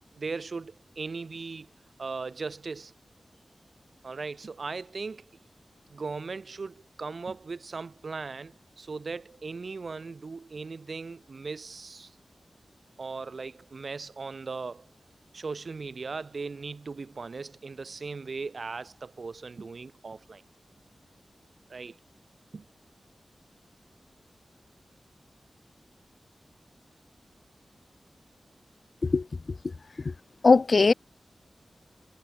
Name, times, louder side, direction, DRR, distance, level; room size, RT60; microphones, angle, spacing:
voice 1, 0.1-1.7 2.0-2.9 4.0-5.3 5.9-12.2 13.0-14.9 15.3-20.4 21.7-22.0 22.5-22.7, right 4 dB, 65° right, 7.4 m, -38 dB
voice 2, 30.4-30.9, left 4 dB, 55° left, 0.5 m, -19 dB
wide cardioid pair, 75°, 0 cm